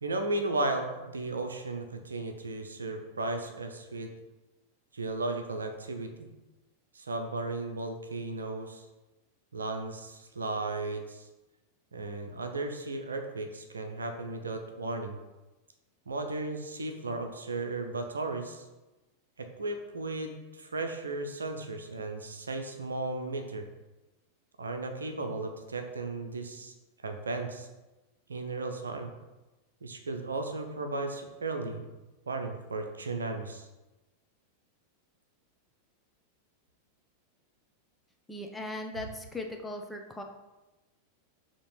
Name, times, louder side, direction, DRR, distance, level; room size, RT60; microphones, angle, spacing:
voice 1, 0.0-4.1 4.9-6.3 6.9-8.9 9.5-11.2 11.9-15.2 16.1-18.6 19.4-23.7 24.6-26.7 27.0-27.7 28.3-29.1 29.8-31.9 32.3-33.7, right 2 dB, 75° right, 5 dB, 0.7 m, -35 dB
voice 2, 38.3-40.2, left 1 dB, 5° left, 2 dB, 0.8 m, -38 dB
6.9 x 3.0 x 5.2 m, 1.1 s
figure-of-eight pair, 90°, 0 cm